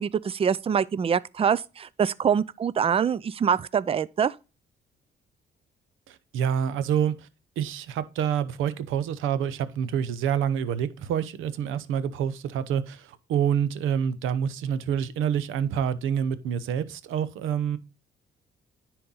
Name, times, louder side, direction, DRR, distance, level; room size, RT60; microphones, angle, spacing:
voice 1, 0.0-4.4, right 7 dB, 30° right, 0.4 m, -25 dB
voice 2, 6.1-7.3 7.6-17.8, right 8 dB, 90° right, 0.8 m, -27 dB
10.0 x 4.5 x 3.9 m
cardioid pair, 90°, 20 cm